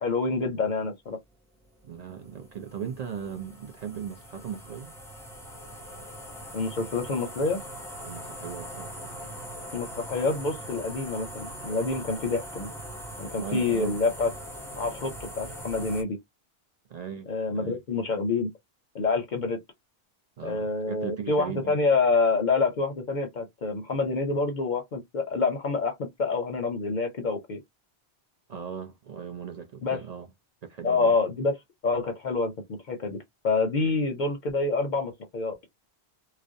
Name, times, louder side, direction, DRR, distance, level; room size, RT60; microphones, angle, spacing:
voice 1, 0.0-1.2 6.5-7.6 9.7-12.7 13.2-14.3 14.8-16.2 17.3-18.5 18.9-19.6 20.4-27.6 29.8-30.0 30.8-31.6 31.8-32.5 32.9-33.2 33.4-35.6, left 3 dB, 55° left, 0.6 m, -27 dB
sound 1, 1.6-16.0, equal, 5° left, 0.4 m, -41 dB
voice 2, 1.8-4.9 8.0-9.4 13.4-14.0 16.9-17.8 20.4-21.8 28.5-30.3 30.6-31.1, right 7 dB, 50° right, 0.5 m, -38 dB
2.4 x 2.0 x 2.5 m
omnidirectional pair, 1.1 m